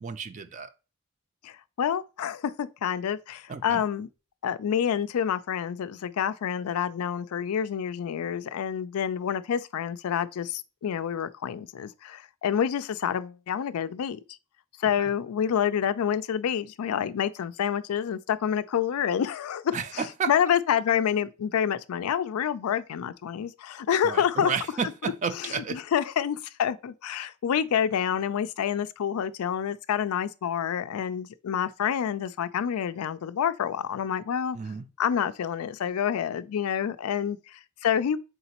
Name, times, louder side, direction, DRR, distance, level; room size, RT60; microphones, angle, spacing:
voice 1, 0.0-0.7 3.5-3.8 15.0-15.1 19.7-20.3 24.0-25.8 34.5-34.9, right 6 dB, 35° right, 0.3 m, -32 dB
voice 2, 1.4-4.1 4.4-14.2 14.8-24.6 25.0-34.6 35.0-38.2, left 8 dB, 85° left, 0.4 m, -28 dB
4.0 x 3.8 x 2.8 m
head